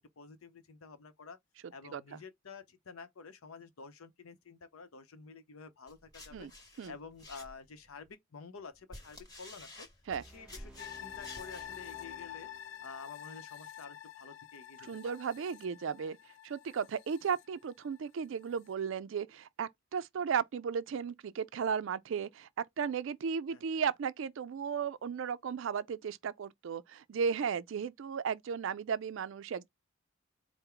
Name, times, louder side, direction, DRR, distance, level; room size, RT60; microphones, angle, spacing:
voice 1, 0.0-1.4 1.7-6.5 6.9-9.9 10.2-12.5 12.8-15.1 23.5-23.8, left 5 dB, 85° left, 0.7 m, -50 dB
sound 1, 5.9-7.9 8.6-11.7, left 2 dB, 20° left, 1.1 m, -51 dB
sound 2, 10.1-13.2, right 1 dB, 5° right, 0.5 m, -56 dB
sound 3, 10.8-18.1 18.5-18.6, left 11 dB, 60° left, 0.3 m, -48 dB
voice 2, 14.9-16.2 16.4-22.5 22.8-29.7, right 6 dB, 65° right, 0.4 m, -35 dB
4.4 x 2.1 x 3.7 m
head